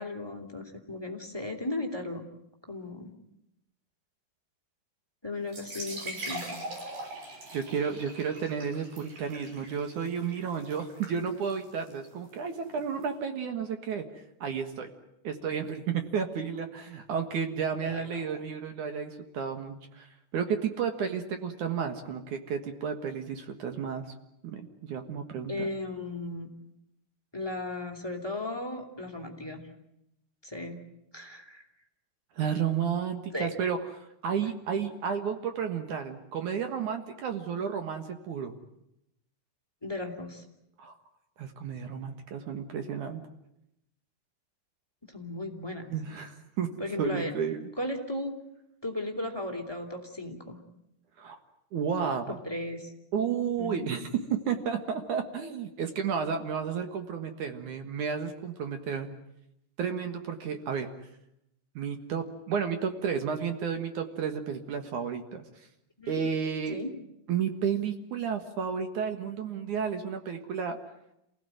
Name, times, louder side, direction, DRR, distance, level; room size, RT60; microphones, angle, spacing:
voice 1, 0.0-2.3 2.7-3.1 5.2-6.6 17.8-18.0 18.3-18.4 25.5-26.5 27.3-29.6 30.4-30.8 31.1-31.6 33.3-33.5 39.8-40.4 45.1-45.9 46.8-47.3 47.8-48.3 48.8-50.6 52.4-52.9 53.6-53.9 66.0-66.2 66.7-66.9, left 2 dB, 10° left, 4 dB, 1.7 m, -36 dB
sound 1, 5.4-13.0, right 1 dB, 45° right, 8.1 m, -42 dB
voice 2, 7.5-14.1 14.4-14.9 15.2-20.1 20.3-24.1 24.4-25.7 32.4-38.6 40.8-40.9 41.4-43.2 45.9-46.7 47.0-47.7 51.2-51.4 51.7-52.4 53.1-59.1 59.8-60.9 61.8-65.5 66.1-66.8 67.3-70.8, right 7 dB, 60° right, 6 dB, 2.1 m, -32 dB
28.0 x 18.0 x 9.2 m, 0.82 s
omnidirectional pair, 5.6 m